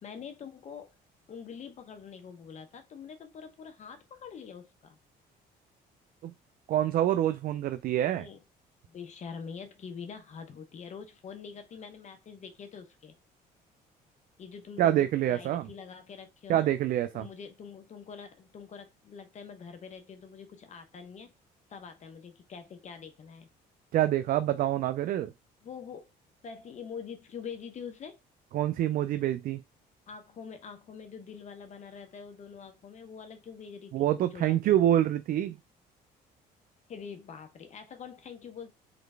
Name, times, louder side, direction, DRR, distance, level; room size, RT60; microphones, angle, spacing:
voice 1, 0.0-1.0 1.3-5.0 8.1-8.4 8.9-13.1 14.4-16.7 17.1-21.3 21.7-23.5 25.6-26.1 26.4-28.2 30.1-34.8 36.9-38.7, left 6 dB, 45° left, 0.8 m, -45 dB
voice 2, 6.7-8.3 14.8-15.7 16.5-17.3 23.9-25.3 28.5-29.6 33.9-35.6, right 12 dB, 55° right, 0.4 m, -26 dB
3.9 x 3.2 x 3.3 m
cardioid pair, 110°, 17 cm